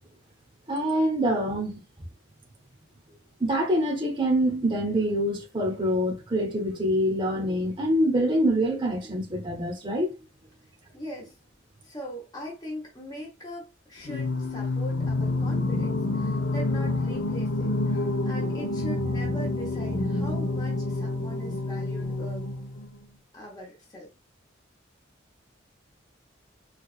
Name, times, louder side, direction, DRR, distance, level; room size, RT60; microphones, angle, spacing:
voice 1, 0.7-1.8 3.4-10.2, equal, 25° right, 0.8 m, -25 dB
voice 2, 10.9-11.4 11.8-22.5 23.3-24.1, equal, 20° left, 0.8 m, -41 dB
Singing, 14.1-23.0, left 2 dB, 65° left, 0.7 m, -28 dB
4.5 x 2.3 x 2.4 m
head